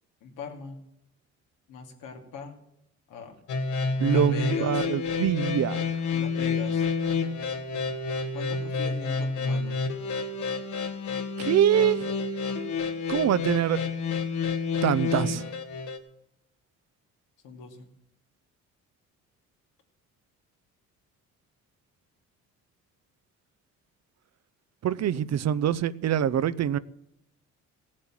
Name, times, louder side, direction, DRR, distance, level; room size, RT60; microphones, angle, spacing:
voice 1, 0.2-0.8 1.7-2.6 3.1-3.3 4.0-4.8 6.1-6.8 8.3-9.8 17.4-17.9, left 4 dB, 90° left, 2.8 m, -40 dB
sound 1, 3.5-16.0, left 4 dB, 75° left, 2.1 m, -29 dB
voice 2, 4.0-5.9 11.4-12.1 13.1-13.8 14.8-15.5 24.8-26.8, right 10 dB, 60° right, 0.7 m, -24 dB
16.5 x 7.5 x 7.5 m
cardioid pair, 90°, 30 cm